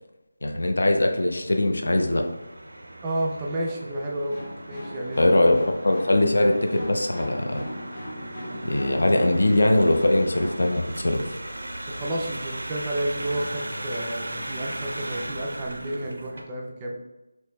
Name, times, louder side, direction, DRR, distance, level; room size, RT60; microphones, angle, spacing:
voice 1, 0.4-2.2 5.2-7.6 8.5-11.4, left 1 dB, 70° left, 4 dB, 0.5 m, -21 dB
sound 1, 0.8-16.4, right 1 dB, 85° right, 0.6 m, -38 dB
voice 2, 3.0-4.4 4.7-5.4 11.9-16.9, right 1 dB, 15° right, -1 dB, 0.3 m, -31 dB
sound 2, 4.3-10.7, left 1 dB, 35° left, 0.7 m, -39 dB
4.4 x 2.9 x 2.2 m, 1.0 s
figure-of-eight pair, 170°, 0 cm